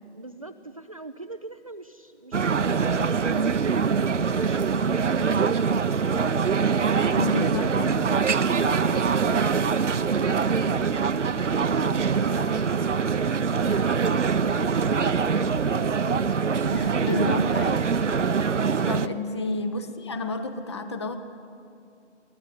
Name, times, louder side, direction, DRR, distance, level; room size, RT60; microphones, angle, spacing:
voice 1, 0.1-5.7 6.7-7.8 8.5-12.8 13.2-16.1 19.3-19.4, right 2 dB, 30° right, 10 dB, 0.5 m, -41 dB
sound 1, 2.3-19.1, right 5 dB, 75° right, 0.9 m, -24 dB
voice 2, 7.2-8.1 16.7-17.9 18.8-21.2, left 2 dB, 25° left, 9 dB, 1.0 m, -30 dB
22.5 x 17.0 x 10.0 m, 2.5 s
figure-of-eight pair, 155°, 36 cm